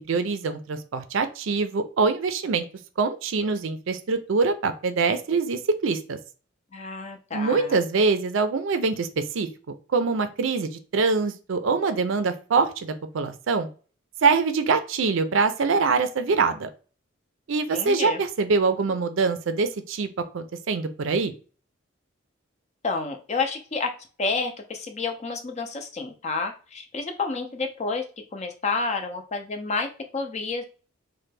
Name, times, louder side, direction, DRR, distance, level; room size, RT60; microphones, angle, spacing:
voice 1, 0.1-2.6 3.0-6.2 7.3-9.5 9.9-13.7 14.2-16.7 17.5-20.1 20.3-21.3, right 4 dB, 65° right, 9 dB, 0.4 m, -24 dB
voice 2, 6.7-7.8 17.7-18.2 22.8-28.1 28.3-30.6, left 4 dB, 35° left, 5 dB, 0.5 m, -30 dB
3.2 x 2.2 x 3.2 m, 0.38 s
head